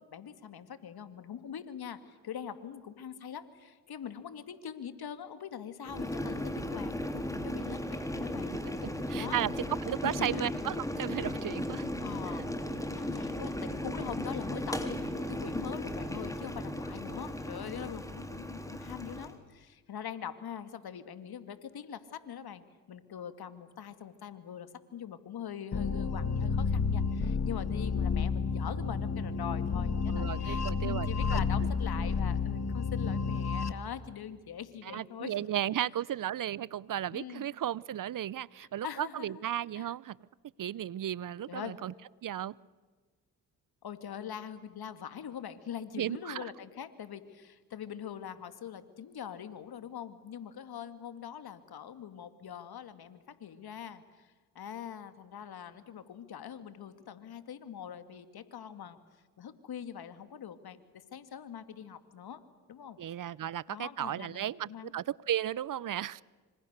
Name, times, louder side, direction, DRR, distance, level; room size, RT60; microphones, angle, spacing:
voice 1, 0.1-8.5 9.2-9.4 10.0-10.5 12.0-12.5 12.9-35.4 37.1-37.5 38.6-39.4 39.8-39.9 41.5-41.7 43.8-59.0 59.4-62.4 62.7-63.0 63.7-64.9, left 8 dB, 60° left, 11 dB, 2.2 m, -43 dB
Boiling, 5.8-19.3, left 1 dB, 10° left, 3.5 m, -36 dB
voice 2, 9.1-9.5 9.8-11.9 30.1-31.4 34.8-40.2 40.6-41.9 42.2-42.6 46.0-46.5 63.0-66.2, right 11 dB, 50° right, 23 dB, 0.8 m, -35 dB
sound 1, 25.7-33.7, left 5 dB, 40° left, 1.9 m, -31 dB
26.0 x 26.0 x 6.7 m, 1.4 s
supercardioid pair, 50°, 41 cm